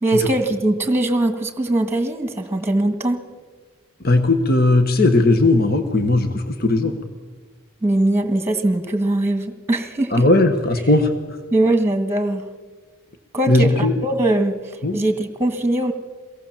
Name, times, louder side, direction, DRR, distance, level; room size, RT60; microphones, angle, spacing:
voice 1, 0.0-3.2 7.8-10.2 11.5-12.4 13.3-14.6 14.9-15.9, right 1 dB, 10° right, 8 dB, 1.7 m, -21 dB
voice 2, 4.0-7.0 10.1-11.4 13.5-14.0 14.8-15.0, left 2 dB, 45° left, 6 dB, 1.4 m, -17 dB
23.5 x 18.0 x 7.3 m, 1.5 s
head